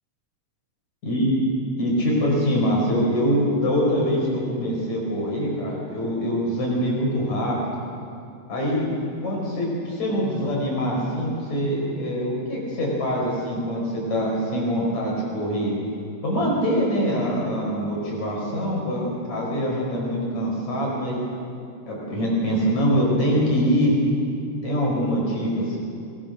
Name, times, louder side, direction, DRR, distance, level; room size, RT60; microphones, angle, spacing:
voice 1, 1.0-1.4 1.8-7.6 8.5-8.9 9.2-15.7 16.2-21.2 21.9-24.0 24.6-25.8, equal, 50° left, -3 dB, 6.4 m, -24 dB
22.5 x 22.0 x 6.6 m, 2.5 s
omnidirectional pair, 4.1 m